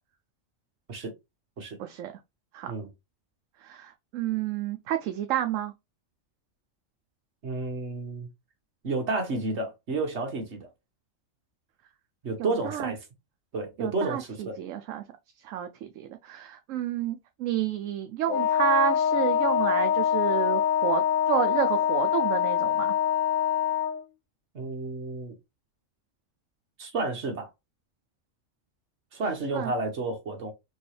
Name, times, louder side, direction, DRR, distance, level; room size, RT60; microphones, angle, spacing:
voice 1, 1.8-2.1 2.5-2.7 3.6-5.7 12.4-12.9 13.8-15.0 15.4-22.9 29.5-29.7, right 12 dB, 80° right, 0.9 m, -30 dB
voice 2, 7.4-8.3 8.8-10.7 12.2-13.0 13.5-14.6 24.5-25.3 26.8-27.5 29.1-30.5, right 3 dB, 60° right, 1.6 m, -31 dB
Wind instrument woodwind instrument, 18.3-24.0, left 9 dB, 85° left, 0.4 m, -24 dB
4.5 x 3.0 x 3.2 m
omnidirectional pair, 1.3 m